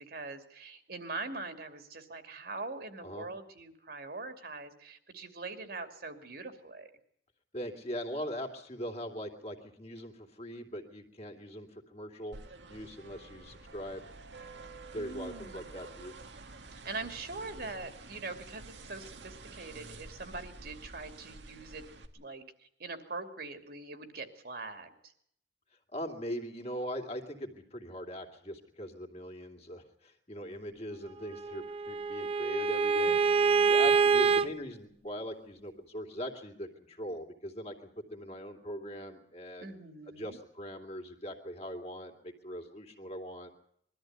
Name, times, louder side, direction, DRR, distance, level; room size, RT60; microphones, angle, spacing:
voice 1, 0.0-6.9 14.9-15.7 16.7-21.8 22.1-22.4 22.8-24.9 33.0-34.4 39.6-40.4, right 3 dB, 60° right, 8 dB, 2.6 m, -43 dB
voice 2, 7.5-12.4 12.7-14.1 14.9-16.1 25.9-33.2 33.7-39.8 40.1-43.5, equal, 35° left, 5 dB, 2.8 m, -41 dB
sound 1, 12.3-22.1, right 3 dB, 90° right, 1.9 m, -49 dB
Bowed string instrument, 31.3-34.5, right 5 dB, 35° right, 0.8 m, -26 dB
22.0 x 13.5 x 9.4 m, 0.69 s
head